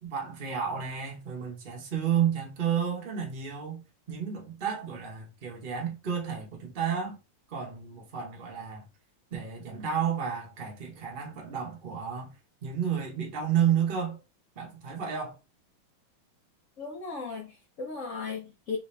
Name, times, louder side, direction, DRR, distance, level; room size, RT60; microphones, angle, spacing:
voice 1, 0.0-7.2 7.5-8.9 9.3-12.3 12.6-14.2 14.6-15.4, right 8 dB, 40° right, 0.7 m, -31 dB
voice 2, 16.8-18.8, left 4 dB, 75° left, 0.7 m, -36 dB
3.3 x 2.8 x 3.2 m
omnidirectional pair, 2.2 m